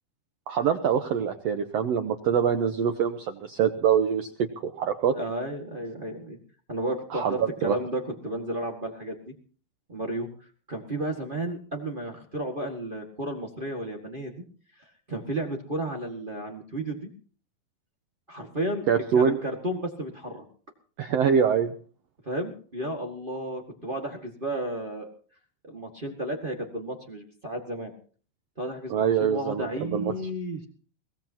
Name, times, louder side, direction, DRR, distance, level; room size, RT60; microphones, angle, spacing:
voice 1, 0.5-4.3 4.6-5.1 7.1-7.7 18.9-19.4 21.0-21.7 28.9-30.1, right 7 dB, 85° right, 7 dB, 1.4 m, -24 dB
voice 2, 5.1-6.4 6.7-9.3 9.9-10.3 10.7-14.4 15.1-17.1 18.3-20.4 22.2-25.1 25.6-27.9 28.6-30.6, right 1 dB, 30° right, 1 dB, 1.0 m, -33 dB
22.5 x 17.5 x 2.9 m, 0.42 s
omnidirectional pair, 4.2 m